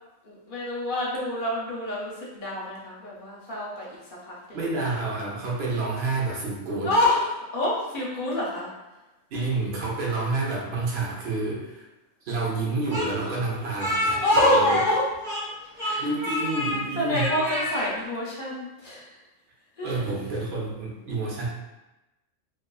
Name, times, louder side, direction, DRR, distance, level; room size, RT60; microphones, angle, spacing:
voice 1, 0.2-4.0 4.2-4.6 6.8-8.7 14.2-15.0 15.6-16.1 17.0-19.2 19.8-20.1, left 1 dB, 55° left, -5 dB, 0.6 m, -26 dB
voice 2, 4.5-6.9 9.3-11.8 12.2-14.8 16.0-17.4 19.8-21.5, right 3 dB, 60° right, -4 dB, 0.9 m, -29 dB
Speech, 12.9-15.5 15.8-16.8 17.1-17.9, left 1 dB, 5° left, 0.8 m, -29 dB
2.4 x 2.3 x 2.2 m, 1.0 s
omnidirectional pair, 1.3 m